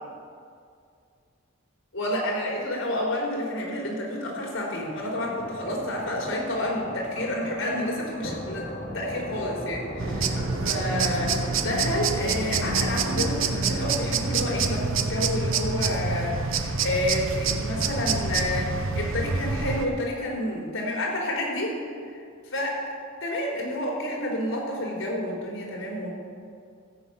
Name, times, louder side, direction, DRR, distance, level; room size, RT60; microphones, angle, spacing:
voice 1, 1.9-8.7 8.9-10.4 10.6-21.7 22.1-22.2 22.5-22.8 23.2-26.1, left 1 dB, 85° left, -2 dB, 3.5 m, -29 dB
sound 1, 4.8-16.1, equal, 50° left, 2.4 m, -39 dB
sound 2, 10.0-19.9, right 4 dB, 75° right, 0.8 m, -27 dB
14.5 x 5.7 x 8.0 m, 2.3 s
head